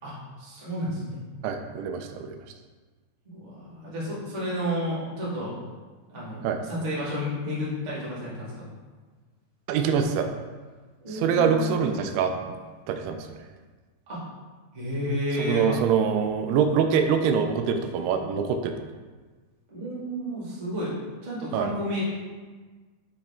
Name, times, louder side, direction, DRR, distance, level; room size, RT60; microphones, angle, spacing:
voice 1, 0.0-1.2 3.2-5.5 6.1-8.5 11.0-11.9 14.1-14.2 14.7-15.8 19.7-20.9 21.2-22.0, equal, 55° right, -8 dB, 0.5 m, -31 dB
voice 2, 1.4-2.4 6.4-6.6 9.7-10.3 11.1-12.3 12.9-13.4 15.4-18.9 21.5-21.7, right 6 dB, 85° right, 6 dB, 2.5 m, -24 dB
6.9 x 5.0 x 3.5 m, 1.4 s
omnidirectional pair, 4.6 m